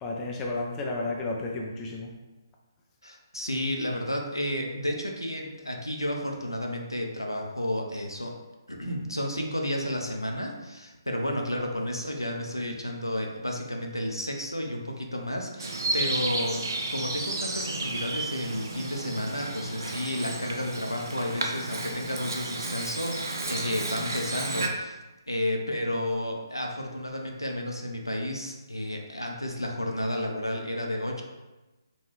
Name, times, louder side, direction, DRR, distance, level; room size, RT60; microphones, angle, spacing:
voice 1, 0.0-2.1, left 2 dB, 15° left, -2 dB, 0.4 m, -32 dB
voice 2, 3.0-8.4 8.7-25.0 25.3-31.2, left 1 dB, 85° left, 2 dB, 0.6 m, -32 dB
Bird vocalization bird call bird song, 15.6-24.7, right 2 dB, 55° right, 0.5 m, -32 dB
3.8 x 2.3 x 3.1 m, 1.1 s
figure-of-eight pair, 140°, 2 cm